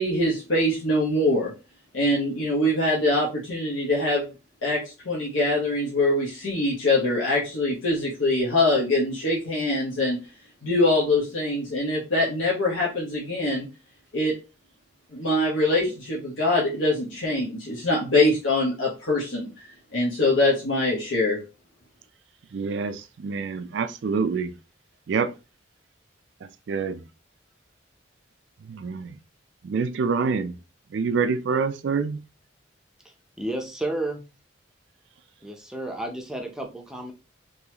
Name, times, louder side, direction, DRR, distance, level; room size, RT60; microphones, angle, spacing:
voice 1, 0.0-1.5 1.9-4.3 4.6-10.2 10.6-13.7 14.1-14.3 15.1-21.4, left 2 dB, 85° left, 1.1 m, -23 dB
voice 2, 22.5-24.5 25.1-25.3 26.7-27.0 28.7-29.2 29.6-30.5 30.9-32.2, right 5 dB, 65° right, 0.3 m, -26 dB
voice 3, 33.0-34.2 35.4-37.1, right 1 dB, 5° right, 0.5 m, -32 dB
3.9 x 3.0 x 2.9 m
head